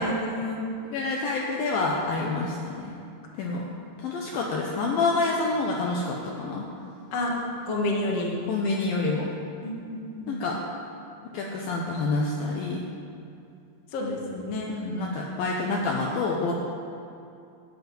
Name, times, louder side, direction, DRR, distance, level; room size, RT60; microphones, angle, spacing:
voice 1, 0.0-0.7 7.1-7.3 7.7-8.4 9.6-10.4 13.9-14.8, left 1 dB, 50° left, -2 dB, 2.1 m, -29 dB
voice 2, 0.9-3.0 3.4-3.7 4.0-6.7 8.5-9.3 10.3-10.6 11.3-12.9 14.7-16.5, left 3 dB, 75° left, -1 dB, 2.4 m, -27 dB
12.5 x 6.2 x 9.1 m, 2.6 s
omnidirectional pair, 4.8 m